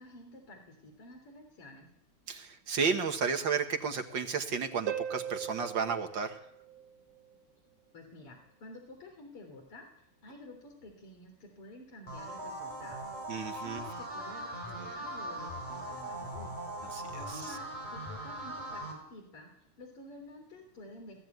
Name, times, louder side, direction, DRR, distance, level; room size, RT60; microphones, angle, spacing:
voice 1, 0.0-1.9 7.9-13.1 13.6-16.6 17.2-19.5 19.8-21.2, left 1 dB, 90° left, 2 dB, 4.3 m, -51 dB
voice 2, 2.3-6.4 13.3-13.8 14.8-15.0 16.9-17.6, right 5 dB, 60° right, 6 dB, 2.2 m, -33 dB
Harp, 4.9-7.4 10.9-11.0, right 9 dB, 80° right, 2.3 m, -39 dB
sound 1, 12.1-18.9, right 1 dB, 20° left, 7.5 m, -40 dB
18.5 x 15.5 x 9.3 m, 0.73 s
omnidirectional pair, 2.4 m